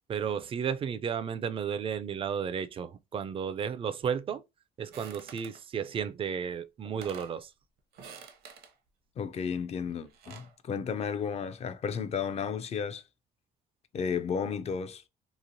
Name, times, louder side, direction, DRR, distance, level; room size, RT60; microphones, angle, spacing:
voice 1, 0.1-4.4 4.8-7.5, right 7 dB, 30° right, 0.3 m, -33 dB
sound 1, 4.9-5.6 6.5-6.6 6.8-7.4 7.9-8.7 9.9-10.5, right 6 dB, 65° right, 0.7 m, -48 dB
voice 2, 9.2-13.0 13.9-15.0, left 6 dB, 40° left, 0.4 m, -33 dB
3.0 x 2.4 x 2.6 m
cardioid pair, 110°, 17 cm